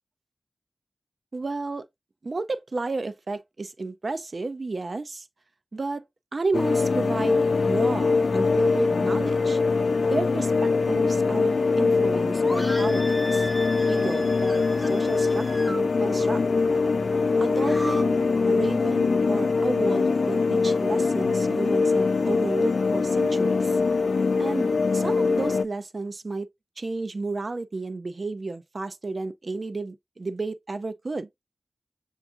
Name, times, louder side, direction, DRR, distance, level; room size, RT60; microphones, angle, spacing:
voice 1, 1.3-1.9 2.2-5.3 5.7-6.1 6.3-9.6 10.1-13.5 13.9-16.4 17.4-23.8 24.4-26.5 26.8-31.3, right 3 dB, 55° right, 0.5 m, -32 dB
sound 1, 6.5-25.6, left 4 dB, 80° left, 0.3 m, -23 dB
sound 2, 12.4-15.8 17.5-18.0, equal, 5° right, 0.5 m, -36 dB
6.9 x 2.4 x 2.4 m
wide cardioid pair, 75°, 0 cm